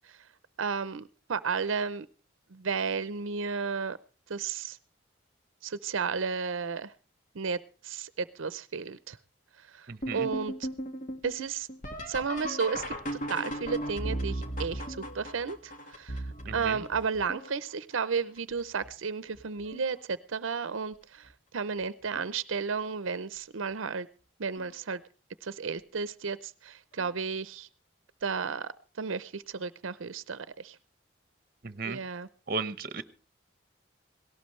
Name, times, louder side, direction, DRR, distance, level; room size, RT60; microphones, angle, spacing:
voice 1, 0.6-2.1 2.5-4.0 4.3-4.8 5.6-6.9 7.3-7.6 7.8-9.2 9.7-10.7 11.2-11.7 12.1-13.0 13.3-16.2 16.5-24.1 24.4-25.0 25.4-27.7 28.2-30.8 31.8-32.3, right 5 dB, 85° right, 15 dB, 0.7 m, -33 dB
voice 2, 9.9-10.3 16.4-16.8 31.6-32.0 32.5-33.0, right 4 dB, 45° right, 13 dB, 0.9 m, -35 dB
sound 1, 10.0-17.7 18.4-18.9 19.3-20.0 21.3-21.4 22.1-22.4 24.6-24.7 27.0-27.1, equal, 40° left, 1.7 m, -37 dB
18.0 x 17.5 x 3.2 m, 0.35 s
head